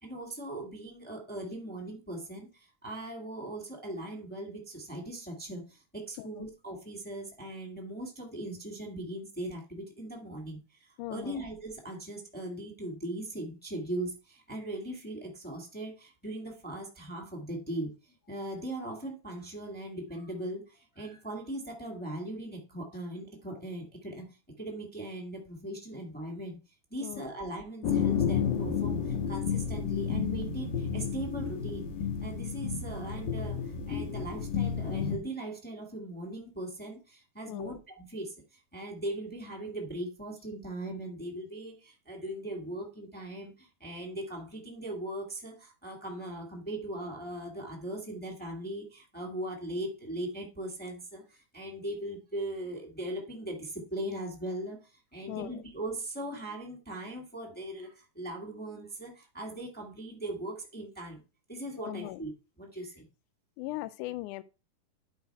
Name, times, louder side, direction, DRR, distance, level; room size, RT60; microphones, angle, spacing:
voice 1, 0.0-26.6 26.9-31.9 32.2-61.2 61.5-62.3 62.6-63.1, right 1 dB, 5° left, 0.7 m, -39 dB
voice 2, 11.0-11.4 27.0-27.3 37.5-37.8 55.3-55.6 61.8-62.2 63.6-64.4, left 18 dB, 85° left, 1.8 m, -39 dB
sound 1, 27.8-35.2, left 7 dB, 65° left, 2.8 m, -31 dB
10.5 x 4.7 x 4.6 m
omnidirectional pair, 4.0 m